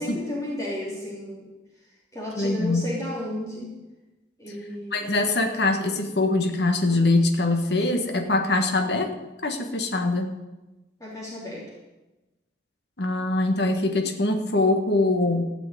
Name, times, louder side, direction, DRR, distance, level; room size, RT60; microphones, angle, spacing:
voice 1, 0.0-1.5 2.1-3.7 4.4-5.2 11.0-11.7 13.2-13.3, left 1 dB, 15° left, -6 dB, 3.3 m, -33 dB
voice 2, 2.4-2.8 4.9-9.1 9.4-10.3 13.0-15.4, left 2 dB, 65° left, 5 dB, 1.4 m, -23 dB
15.0 x 6.1 x 9.2 m, 1.1 s
head